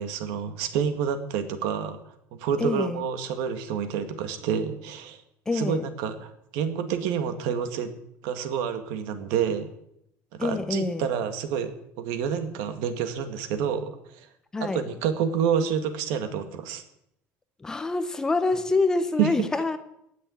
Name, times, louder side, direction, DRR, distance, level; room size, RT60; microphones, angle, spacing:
voice 1, 0.0-2.0 2.3-5.2 5.5-7.9 8.2-9.7 10.3-11.7 12.0-14.3 14.6-16.8 19.2-19.3, right 7 dB, 75° right, 8 dB, 2.1 m, -28 dB
voice 2, 2.6-3.0 5.5-5.8 10.4-11.0 14.5-14.8 17.6-19.8, left 3 dB, 10° left, 10 dB, 0.8 m, -26 dB
18.0 x 6.8 x 9.6 m, 0.76 s
cardioid pair, 180°, 6 cm